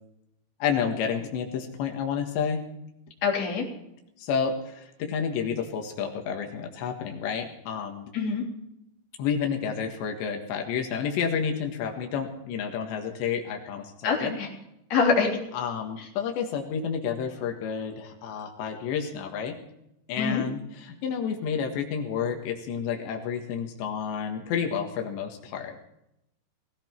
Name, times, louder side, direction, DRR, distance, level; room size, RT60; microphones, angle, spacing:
voice 1, 0.6-2.7 4.2-8.1 9.2-14.4 15.5-19.6 20.1-25.8, left 7 dB, 85° left, 3 dB, 3.8 m, -30 dB
voice 2, 3.2-3.7 8.1-8.4 14.0-14.5 14.9-15.3 20.2-20.4, left 5 dB, 40° left, -1 dB, 4.2 m, -24 dB
20.0 x 15.5 x 4.5 m, 0.83 s
omnidirectional pair, 4.9 m